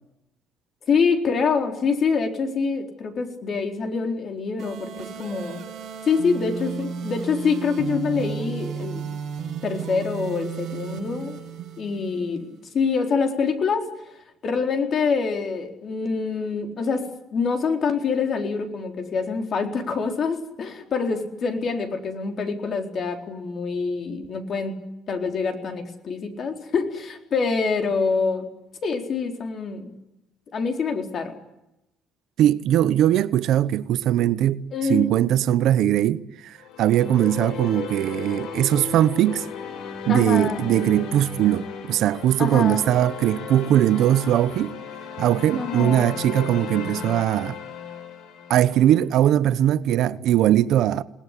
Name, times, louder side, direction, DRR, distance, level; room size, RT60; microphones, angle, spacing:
voice 1, 0.9-5.6 6.0-9.0 9.6-11.4 11.8-13.9 14.4-24.8 25.1-28.5 28.8-29.9 30.5-31.3 34.7-35.1 40.1-40.6 42.4-42.9 45.6-46.1, left 5 dB, 40° left, 4.1 m, -25 dB
sound 1, 4.6-12.6, right 7 dB, 40° right, 7.2 m, -34 dB
voice 2, 32.4-34.6 34.9-39.5 40.1-44.8 45.2-47.6 48.5-51.0, right 12 dB, 60° right, 1.0 m, -20 dB
sound 2, 36.6-49.0, left 7 dB, 70° left, 6.8 m, -35 dB
29.0 x 19.5 x 10.0 m
cardioid pair, 150°, 0 cm